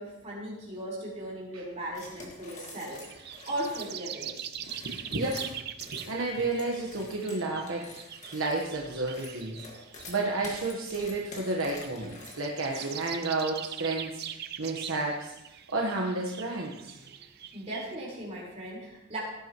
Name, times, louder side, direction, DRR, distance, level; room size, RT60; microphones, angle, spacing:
voice 1, 0.0-4.5 12.7-12.9 17.5-19.2, right 1 dB, 30° right, -5 dB, 4.5 m, -38 dB
sound 1, 1.9-4.0 4.5-13.4, left 2 dB, 35° left, 1.9 m, -47 dB
sound 2, 2.8-17.9, right 10 dB, 50° right, 0.6 m, -43 dB
voice 2, 4.8-5.4 5.9-9.6 10.1-15.3 15.7-17.0, right 2 dB, 65° right, -1 dB, 1.3 m, -31 dB
17.5 x 9.5 x 3.1 m, 0.92 s
head